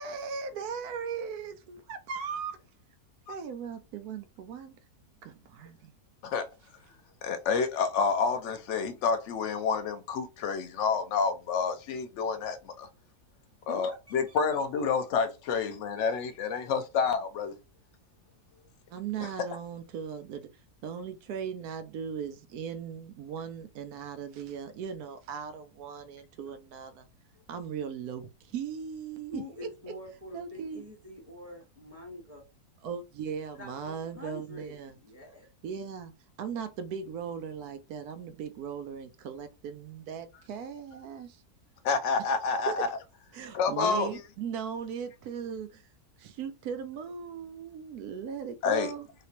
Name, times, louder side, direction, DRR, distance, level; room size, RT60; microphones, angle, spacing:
voice 1, 0.0-2.5 3.3-4.7 5.2-5.9 18.9-20.5 20.8-27.1 27.5-29.7 30.3-30.8 32.8-34.9 35.6-36.1 36.4-41.4 42.7-42.8 43.3-45.8 46.2-49.1, right 7 dB, 80° right, 1.1 m, -38 dB
voice 2, 7.2-12.9 13.7-17.5 41.8-42.9 43.5-44.1 48.6-48.9, left 5 dB, 65° left, 0.8 m, -29 dB
voice 3, 13.6-14.6 14.9-15.0 29.3-32.4 33.6-35.5, left 2 dB, 10° right, 1.2 m, -46 dB
3.2 x 2.9 x 2.8 m
omnidirectional pair, 1.6 m